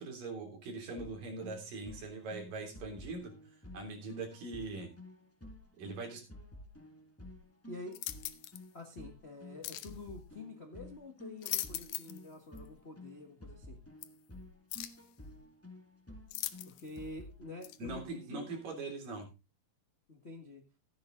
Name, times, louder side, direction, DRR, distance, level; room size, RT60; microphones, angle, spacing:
voice 1, 0.0-3.3 3.7-4.9 5.8-6.2 17.8-19.3, right 3 dB, 65° right, 2 dB, 4.8 m, -41 dB
sound 1, 1.0-18.6, left 1 dB, 10° left, 0.6 m, -52 dB
voice 2, 7.7-8.0 8.7-13.8 16.6-18.5 20.1-20.6, left 2 dB, 40° left, 3 dB, 0.8 m, -48 dB
sound 2, 7.9-8.6 9.6-10.0 11.2-12.3 12.6-12.7 14.0-14.1 14.7-15.1 16.3-17.0 17.6-17.8, left 14 dB, 75° left, 2.4 m, -40 dB
14.0 x 9.5 x 3.8 m, 0.28 s
omnidirectional pair, 4.2 m